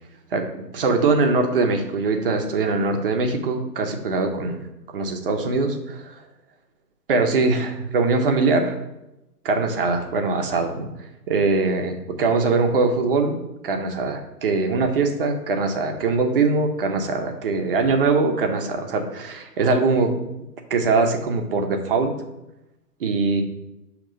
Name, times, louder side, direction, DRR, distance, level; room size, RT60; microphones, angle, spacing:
voice 1, 0.3-4.6 4.9-5.7 7.1-8.8 9.4-10.9 11.3-13.4 13.6-20.1 20.7-22.1 23.0-23.4, right 3 dB, 35° right, 4 dB, 0.7 m, -22 dB
6.2 x 2.9 x 5.2 m, 0.94 s
hypercardioid pair, 140°, 49 cm